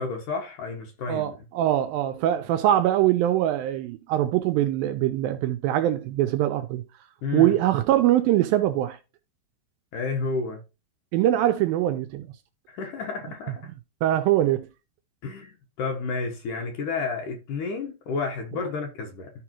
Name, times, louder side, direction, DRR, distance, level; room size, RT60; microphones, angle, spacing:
voice 1, 0.0-1.3 7.2-7.6 9.9-10.6 12.7-13.7 15.2-19.3, left 4 dB, 65° left, 2.2 m, -31 dB
voice 2, 1.1-6.8 7.3-9.0 11.1-12.3 14.0-14.7, right 13 dB, 80° right, 2.1 m, -23 dB
13.5 x 4.9 x 3.0 m
omnidirectional pair, 4.7 m